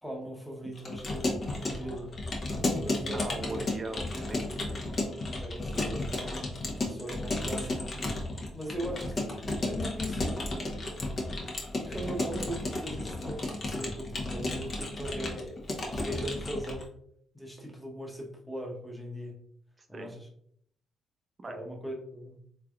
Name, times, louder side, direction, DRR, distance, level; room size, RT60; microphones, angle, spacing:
voice 1, 0.0-2.1 2.8-3.7 5.1-6.1 6.8-7.8 8.5-10.8 11.8-15.6 15.9-16.9 17.3-19.4 19.9-20.3 21.5-22.4, equal, ahead, 0 dB, 1.0 m, -39 dB
Keyboard (musical) / Computer keyboard, 0.8-16.8, left 2 dB, 40° left, 1.0 m, -33 dB
voice 2, 3.1-4.8 19.8-20.1 21.4-21.6, right 2 dB, 35° right, 5 dB, 0.6 m, -40 dB
3.8 x 3.2 x 2.4 m, 0.67 s
cardioid pair, 90°, 0 cm